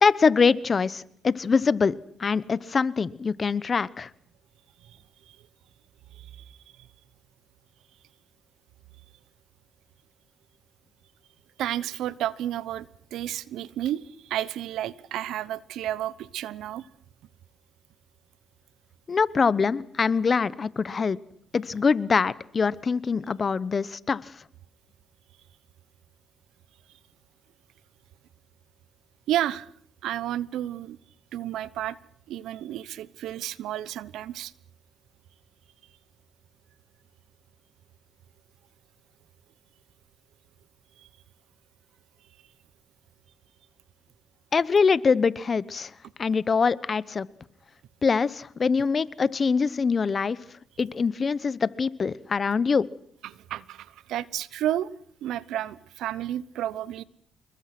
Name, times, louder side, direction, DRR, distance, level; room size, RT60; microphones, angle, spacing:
voice 1, 0.0-1.9 2.2-4.1 19.1-21.2 21.5-24.2 44.5-45.9 46.2-47.3 48.0-50.4 50.8-52.9, left 5 dB, 40° left, 19 dB, 1.0 m, -24 dB
voice 2, 6.1-6.5 11.6-16.9 29.3-29.7 30.0-31.0 31.3-32.0 32.3-34.5 53.2-54.9 55.2-57.0, right 12 dB, 85° right, 19 dB, 0.9 m, -31 dB
27.5 x 22.0 x 6.1 m, 0.64 s
cardioid pair, 90°, 0 cm